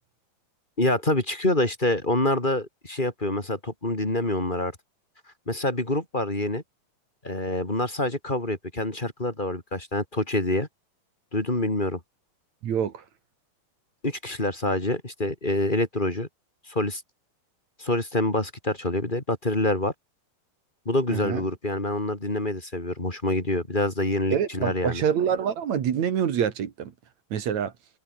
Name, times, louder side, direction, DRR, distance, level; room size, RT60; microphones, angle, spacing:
voice 1, 0.8-4.7 5.5-6.6 7.2-10.7 11.3-12.0 14.0-16.3 16.7-17.0 17.8-19.9 20.8-25.0, left 1 dB, 15° left, 2.9 m, -26 dB
voice 2, 12.6-13.0 21.1-21.4 24.3-26.9 27.3-27.7, right 8 dB, 55° right, 2.7 m, -26 dB
omnidirectional pair, 4.4 m